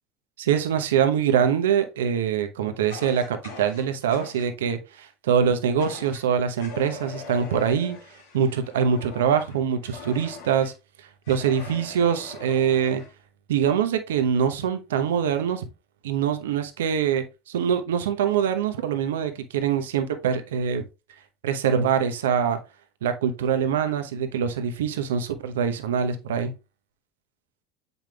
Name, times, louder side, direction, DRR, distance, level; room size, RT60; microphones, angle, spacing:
voice 1, 0.4-8.0 8.3-10.7 11.3-13.0 13.5-15.7 16.0-20.8 21.4-22.6 23.0-26.5, right 8 dB, 75° right, 0.9 m, -24 dB
Fire, 2.9-4.5 5.8-6.2 6.6-10.7 11.2-13.1, left 4 dB, 75° left, 2.2 m, -42 dB
7.4 x 5.4 x 2.3 m
hypercardioid pair, 70°, 0 cm